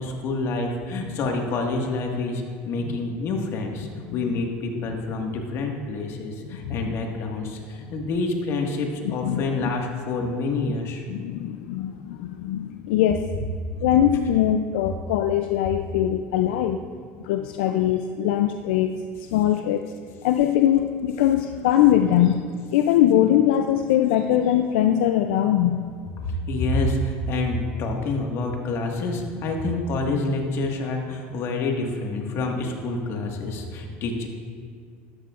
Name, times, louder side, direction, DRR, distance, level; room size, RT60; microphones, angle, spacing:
voice 1, 0.0-11.0 16.4-16.6 26.2-34.3, left 2 dB, 55° left, 2 dB, 1.7 m, -27 dB
voice 2, 4.1-4.4 6.6-6.8 9.0-9.7 11.1-13.2 13.8-16.8 17.2-19.0 19.3-19.9 20.2-22.4 22.7-25.8, left 11 dB, 80° left, 7 dB, 0.4 m, -21 dB
12.5 x 12.0 x 2.5 m, 2.1 s
supercardioid pair, 105°, 5 cm